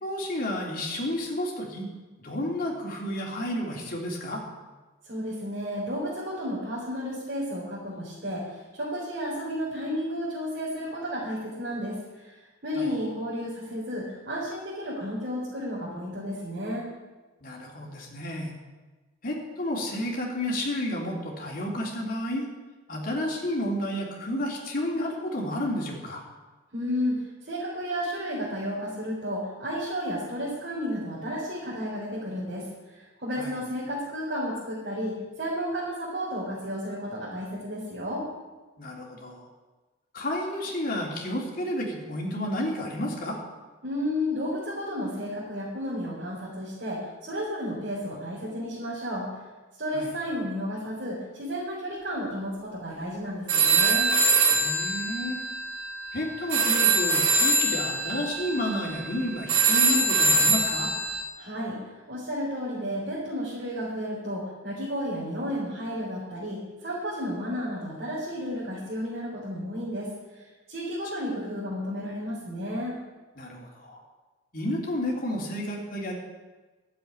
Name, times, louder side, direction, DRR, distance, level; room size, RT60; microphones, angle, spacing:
voice 1, 0.0-1.9 2.2-4.4 12.8-12.9 17.4-18.6 19.2-22.5 22.9-26.2 33.4-33.6 38.8-39.5 40.1-43.4 49.9-50.1 54.5-55.4 56.1-60.9 73.4-74.0 74.5-76.2, left 1 dB, 45° left, -1 dB, 3.3 m, -31 dB
voice 2, 5.0-16.9 26.7-38.3 43.8-49.3 49.8-54.1 61.4-70.1 70.3-72.9, equal, 50° right, -7 dB, 4.2 m, -32 dB
sound 1, 53.5-61.2, right 3 dB, 85° right, 2.7 m, -24 dB
12.5 x 7.8 x 9.8 m, 1.2 s
head